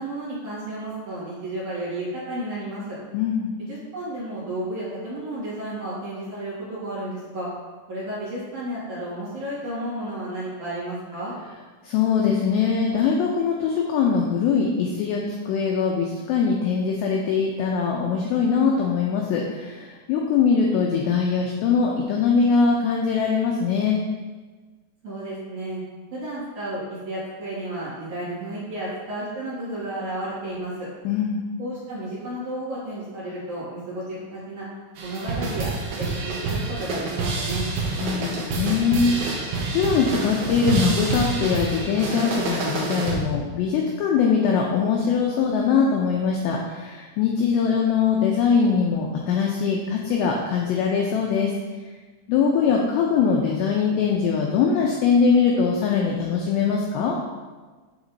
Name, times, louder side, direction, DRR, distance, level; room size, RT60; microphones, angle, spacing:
voice 1, 0.0-3.0 3.6-7.5 7.9-11.3 25.0-25.8 26.1-30.9 31.6-34.7 35.0-35.7 36.0-37.7, right 1 dB, 50° right, -10 dB, 2.8 m, -32 dB
voice 2, 3.1-3.5 11.8-24.0 31.0-31.4 38.0-51.5 52.3-57.2, left 6 dB, 85° left, -1 dB, 2.4 m, -22 dB
sound 1, 35.0-43.3, right 3 dB, 75° right, 2.5 m, -27 dB
7.9 x 7.5 x 2.7 m, 1.3 s
omnidirectional pair, 5.7 m